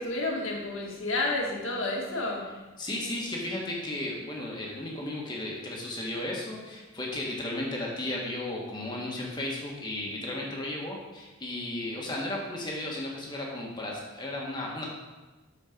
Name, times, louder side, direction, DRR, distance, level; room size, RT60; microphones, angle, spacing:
voice 1, 0.0-2.5, left 2 dB, 75° left, -1 dB, 1.8 m, -30 dB
voice 2, 2.8-14.8, left 1 dB, 20° left, -3 dB, 1.6 m, -34 dB
8.8 x 4.6 x 5.9 m, 1.2 s
head